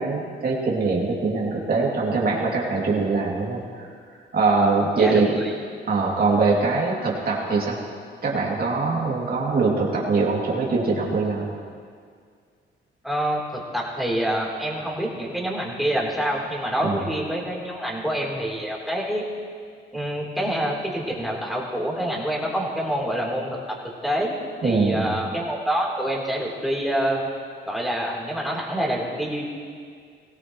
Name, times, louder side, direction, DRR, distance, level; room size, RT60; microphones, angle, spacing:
voice 1, 0.0-3.9 4.3-5.4 5.9-7.8 8.2-11.5 16.8-17.0 24.6-25.2, right 4 dB, 50° right, -3 dB, 2.7 m, -23 dB
voice 2, 5.0-5.5 13.0-19.2 19.9-23.6 24.0-24.3 24.6-27.3 27.7-29.5, equal, ahead, -4 dB, 3.6 m, -26 dB
18.0 x 17.0 x 3.2 m, 2.1 s
cardioid pair, 90°, 20 cm